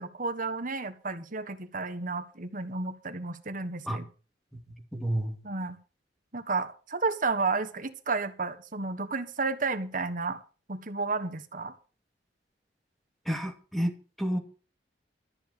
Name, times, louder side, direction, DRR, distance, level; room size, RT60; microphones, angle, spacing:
voice 1, 0.0-4.1 5.4-5.8 6.3-10.4 10.7-11.7, right 4 dB, 50° right, 1.5 m, -32 dB
voice 2, 4.5-5.4 13.3-14.4, equal, ahead, 2.7 m, -31 dB
13.5 x 7.3 x 7.8 m
head